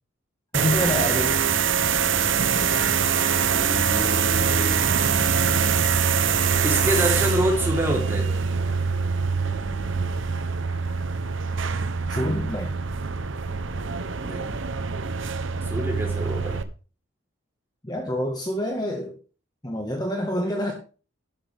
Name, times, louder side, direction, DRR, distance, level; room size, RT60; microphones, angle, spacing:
voice 1, 0.5-1.4 12.1-12.7 17.8-19.2 19.6-20.7, left 1 dB, 20° left, 2 dB, 1.6 m, -27 dB
sound 1, 0.5-16.6, right 6 dB, 70° right, 0.9 m, -24 dB
voice 2, 3.4-4.8 6.6-8.4 14.2-14.5 15.6-16.6, equal, 10° right, -1 dB, 3.6 m, -27 dB
12.0 x 11.5 x 3.5 m, 0.37 s
head